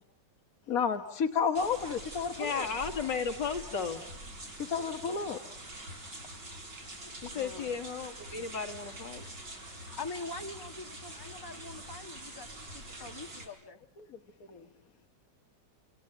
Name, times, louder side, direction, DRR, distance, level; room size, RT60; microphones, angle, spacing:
voice 1, 0.7-2.7 4.6-5.4 9.9-10.0 14.5-14.7, left 6 dB, 55° left, 4 dB, 1.6 m, -31 dB
sound 1, 1.5-13.5, right 1 dB, 70° right, 6.4 m, -45 dB
voice 2, 2.4-4.0 7.2-9.3, left 6 dB, 75° left, 5 dB, 2.9 m, -34 dB
voice 3, 7.0-7.8 10.0-13.8, left 3 dB, 15° left, 4 dB, 1.5 m, -44 dB
28.5 x 27.5 x 6.9 m, 0.72 s
omnidirectional pair, 1.9 m